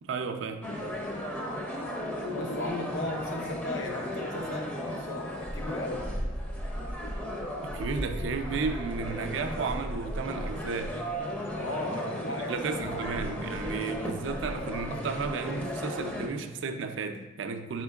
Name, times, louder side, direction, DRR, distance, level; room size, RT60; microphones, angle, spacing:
voice 1, 0.0-0.7 7.6-11.0 12.5-17.8, right 4 dB, 65° right, 6 dB, 0.4 m, -33 dB
sound 1, 0.6-16.3, equal, 10° left, 0.5 m, -35 dB
voice 2, 2.3-6.1 11.6-12.5 12.9-13.1, left 2 dB, 80° left, 2 dB, 0.7 m, -35 dB
5.0 x 4.4 x 2.3 m, 1.3 s
head